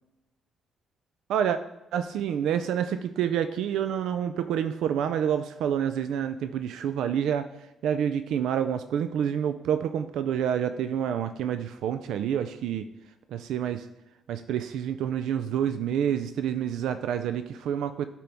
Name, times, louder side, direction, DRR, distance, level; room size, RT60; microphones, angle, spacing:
voice 1, 1.9-7.5 7.8-12.9 13.3-13.9 14.3-18.1, right 9 dB, 80° right, 10 dB, 0.3 m, -28 dB
11.5 x 4.4 x 3.5 m, 0.94 s
cardioid pair, 145°, 0 cm